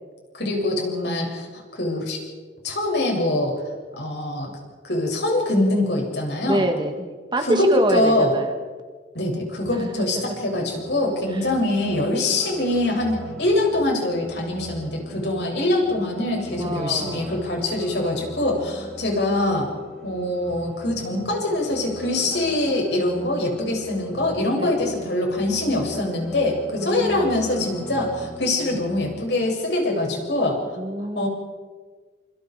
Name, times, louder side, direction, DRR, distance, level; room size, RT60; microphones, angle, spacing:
voice 1, 0.3-1.5 1.7-2.2 2.6-3.5 4.0-4.5 4.8-6.6 7.4-8.3 9.1-19.7 20.0-30.6 31.1-31.3, left 1 dB, 70° left, 0 dB, 7.9 m, -23 dB
voice 2, 6.5-8.5 9.7-10.1 11.3-11.5 16.5-17.4 24.6-24.9 26.8-27.4 30.7-31.3, right 1 dB, 25° right, 5 dB, 2.0 m, -26 dB
sound 1, 9.6-29.4, equal, 5° left, 4.4 m, -41 dB
28.5 x 27.0 x 5.1 m, 1.4 s
head